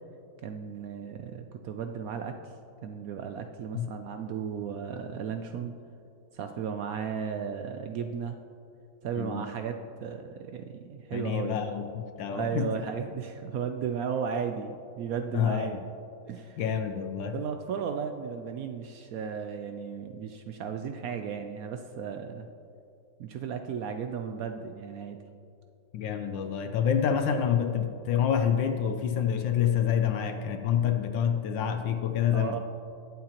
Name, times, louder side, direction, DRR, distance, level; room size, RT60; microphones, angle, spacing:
voice 1, 0.4-2.3 2.8-5.7 6.3-8.4 9.0-11.6 12.3-15.8 16.3-16.6 17.3-22.5 23.2-25.2 32.3-32.6, right 6 dB, 80° right, 6 dB, 0.7 m, -35 dB
voice 2, 11.1-12.7 15.3-15.8 16.6-17.4 25.9-32.6, left 8 dB, 75° left, 7 dB, 1.3 m, -27 dB
20.5 x 7.7 x 2.9 m, 2.5 s
omnidirectional pair, 2.1 m